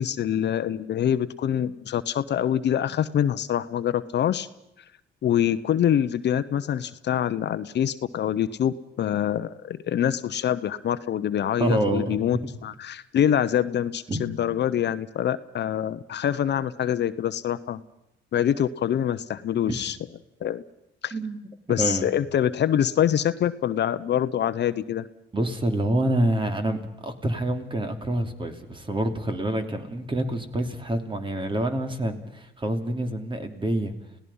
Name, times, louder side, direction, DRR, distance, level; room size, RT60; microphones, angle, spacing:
voice 1, 0.0-4.5 5.2-17.8 18.3-20.0 20.4-20.6 21.0-21.1 21.7-25.1, left 10 dB, 60° left, 13 dB, 0.9 m, -25 dB
voice 2, 11.6-12.3 14.1-14.4 19.7-19.8 21.1-21.5 21.7-22.1 25.3-33.9, right 1 dB, 25° right, 6 dB, 2.8 m, -27 dB
29.5 x 17.0 x 5.6 m, 0.82 s
cardioid pair, 90°, 20 cm